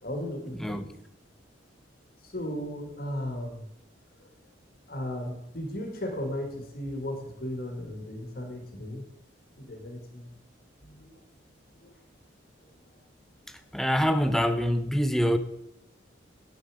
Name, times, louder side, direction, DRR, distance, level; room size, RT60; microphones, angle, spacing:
voice 1, 0.0-0.9 2.2-3.7 4.2-4.3 4.9-9.1 9.6-10.3 10.8-11.2 11.8-12.0, left 1 dB, 50° left, 1.8 m, -36 dB
voice 2, 13.7-15.4, equal, ahead, 0.6 m, -25 dB
9.6 x 8.5 x 4.8 m
head